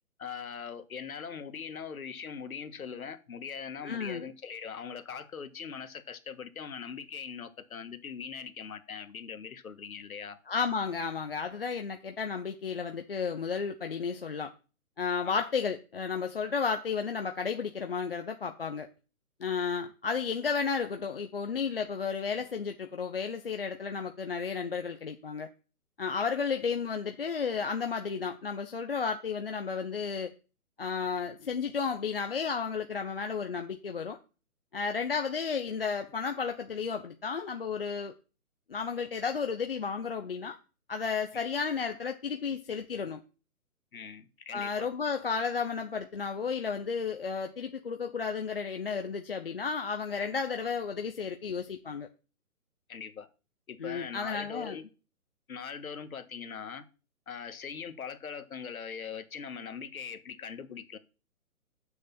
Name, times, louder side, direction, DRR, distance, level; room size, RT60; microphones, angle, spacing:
voice 1, 0.2-10.4 15.2-15.4 41.3-41.4 43.9-44.9 52.9-53.3 53.7-54.8 55.5-56.8 57.3-61.0, left 6 dB, 65° left, 1.6 m, -41 dB
voice 2, 3.8-4.2 10.5-14.5 15.0-18.9 19.4-25.5 26.0-30.3 30.8-34.2 34.7-38.1 38.7-40.6 40.9-43.2 44.5-52.1 53.8-54.8, left 5 dB, 40° left, 0.7 m, -33 dB
6.5 x 6.4 x 7.5 m
hypercardioid pair, 170°, 45 cm